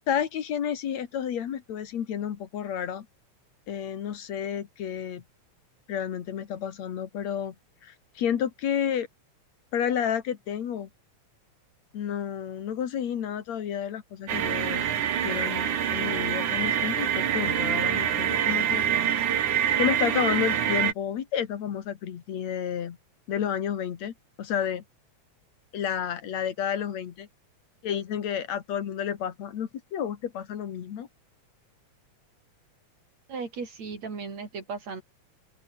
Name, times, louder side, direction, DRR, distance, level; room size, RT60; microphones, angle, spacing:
voice 1, 0.1-3.1 3.7-5.2 5.9-7.5 7.8-9.1 9.7-10.9 11.9-14.9 15.2-18.9 19.8-23.0 23.3-24.8 25.7-27.3 27.8-31.1, left 9 dB, 70° left, 2.9 m, -31 dB
sound 1, 14.3-20.9, right 9 dB, 85° right, 3.5 m, -26 dB
voice 2, 33.3-35.0, right 5 dB, 65° right, 5.6 m, -36 dB
omnidirectional pair, 3.3 m